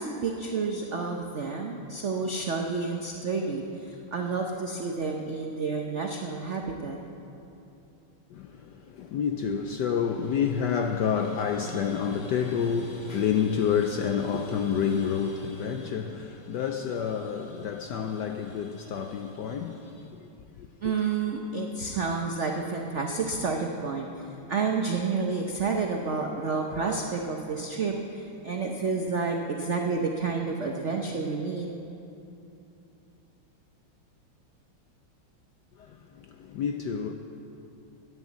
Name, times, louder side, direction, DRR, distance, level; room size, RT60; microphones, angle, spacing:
voice 1, 0.0-7.0 20.8-24.1 24.5-31.7, right 4 dB, 85° right, 0.6 m, -30 dB
voice 2, 8.3-20.3 20.6-20.9 35.8-35.9 36.4-37.1, left 7 dB, 75° left, 1.0 m, -29 dB
10.5 x 10.5 x 8.2 m
omnidirectional pair, 2.4 m